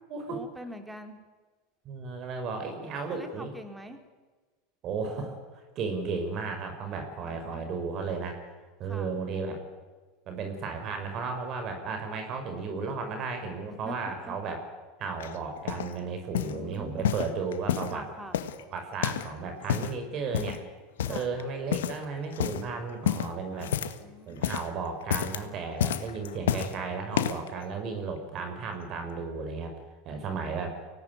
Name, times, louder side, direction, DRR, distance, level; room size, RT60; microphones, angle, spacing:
voice 1, 0.3-1.2 3.1-4.0 6.8-7.7 8.8-9.2 13.7-14.3 16.3-17.2 17.9-18.4 21.0-21.3 24.0-24.8 26.5-26.7 30.1-30.7, equal, 10° right, 6 dB, 3.8 m, -45 dB
voice 2, 1.9-3.5 4.8-8.4 8.8-9.6 10.3-14.6 15.0-18.0 18.7-20.6 21.1-23.7 24.3-29.7 30.1-30.8, right 4 dB, 45° right, 6 dB, 5.3 m, -34 dB
sound 1, 15.2-15.9 16.3-16.6 17.0-18.0 18.3-19.3 19.6-20.0 20.3-20.6 21.0-21.4 21.7-22.0 22.3-22.6 23.0-24.1 24.3-24.7 25.0-25.4 25.8-26.7 27.1-27.5 28.2-28.3, left 10 dB, 80° left, 1.6 m, -30 dB
24.0 x 18.0 x 9.5 m, 1.3 s
hypercardioid pair, 100°, 0 cm